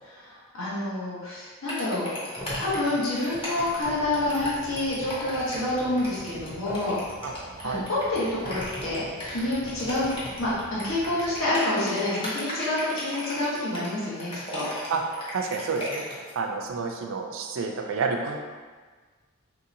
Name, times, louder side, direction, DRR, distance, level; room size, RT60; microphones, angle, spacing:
voice 1, 0.0-7.0 7.6-10.1 10.4-14.7, left 1 dB, 75° left, -7 dB, 1.0 m, -28 dB
sound 1, 1.7-16.3, left 1 dB, 25° left, 0.7 m, -36 dB
sound 2, 2.4-7.1 8.4-10.6, equal, 10° right, 0.5 m, -44 dB
sound 3, 3.8-11.4, left 1 dB, 45° left, 1.3 m, -49 dB
voice 2, 15.3-16.0 16.3-18.4, right 4 dB, 65° right, 3 dB, 0.4 m, -29 dB
3.1 x 2.8 x 2.5 m, 1.4 s
head